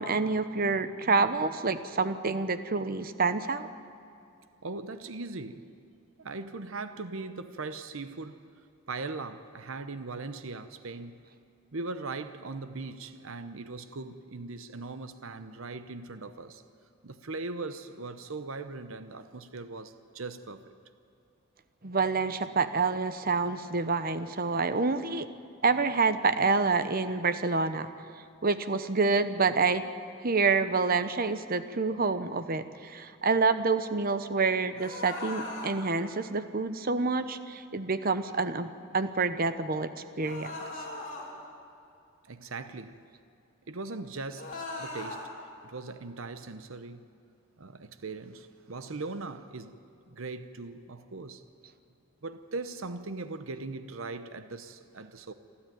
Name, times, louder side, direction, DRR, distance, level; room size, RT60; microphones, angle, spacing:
voice 1, 0.0-3.7 21.8-25.3 25.6-27.9 28.4-29.8 30.2-39.9 40.2-40.5, right 4 dB, 45° right, 12 dB, 0.9 m, -27 dB
voice 2, 4.6-5.7 6.2-8.4 8.9-11.2 11.7-16.6 17.0-20.7 42.3-43.0 43.7-44.5 44.8-45.3 45.6-47.0 47.6-49.8 50.1-51.4 52.2-55.3, right 3 dB, 65° right, 11 dB, 0.9 m, -39 dB
sound 1, 34.7-35.7 40.2-41.2 44.3-45.2, left 2 dB, 35° left, 4.1 m, -39 dB
27.5 x 13.0 x 9.3 m, 2.5 s
head